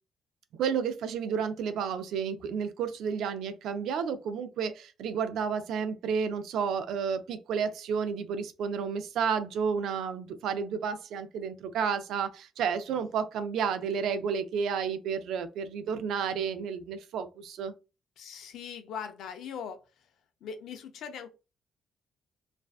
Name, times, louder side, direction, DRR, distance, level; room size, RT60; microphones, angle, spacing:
voice 1, 0.6-17.7, right 6 dB, 80° right, 0.4 m, -31 dB
voice 2, 18.2-19.8 20.4-21.3, left 7 dB, 80° left, 0.4 m, -40 dB
2.5 x 2.1 x 2.3 m
cardioid pair, 90°, 0 cm